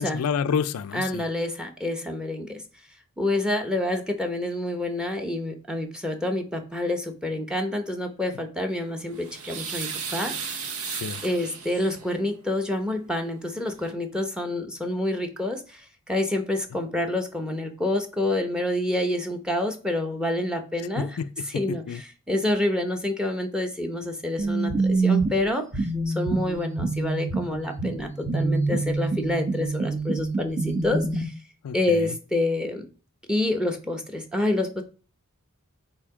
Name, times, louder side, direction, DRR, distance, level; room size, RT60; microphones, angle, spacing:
voice 1, 0.0-1.2 10.8-11.2 20.8-22.0 31.6-32.2, left 6 dB, 80° left, 0.4 m, -30 dB
voice 2, 0.9-2.6 3.2-10.5 11.2-21.1 21.5-31.3 31.7-32.9 33.3-34.8, left 1 dB, 5° right, 0.9 m, -28 dB
sound 1, 8.9-12.2 13.4-13.5 13.8-13.9, right 6 dB, 80° right, 1.1 m, -35 dB
sound 2, 24.4-31.2, right 3 dB, 30° right, 1.0 m, -26 dB
8.3 x 2.8 x 4.9 m
head